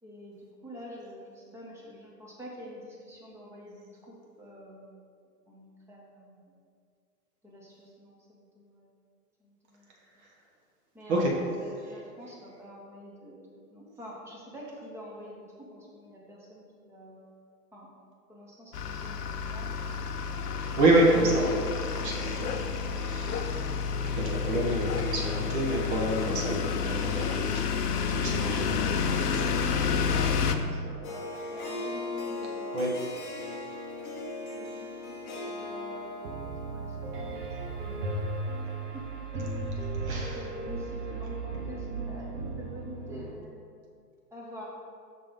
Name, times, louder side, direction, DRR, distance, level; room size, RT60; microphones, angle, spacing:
voice 1, 0.0-5.0 5.5-6.5 7.4-8.9 9.4-9.9 10.9-13.4 13.7-17.3 17.7-17.9 18.3-19.9 28.2-32.8 34.5-34.7 35.1-35.2 35.5-36.3 36.7-38.4 38.9-39.0 39.3-39.6 40.1-43.8 44.3-44.7, equal, 5° right, -4 dB, 0.9 m, -46 dB
sound 1, 18.7-30.6, left 6 dB, 70° left, 0.6 m, -30 dB
voice 2, 20.8-21.6 21.9-22.7 23.0-23.6 24.1-27.8 28.1-28.8 32.7-32.9 40.0-40.4, right 1 dB, 45° right, -2 dB, 1.3 m, -27 dB
Harp, 31.0-38.5, left 2 dB, 20° left, 0.8 m, -39 dB
Piano, 36.2-43.3, right 3 dB, 75° right, 1.0 m, -35 dB
5.9 x 3.4 x 5.2 m, 2.2 s
figure-of-eight pair, 105°, 48 cm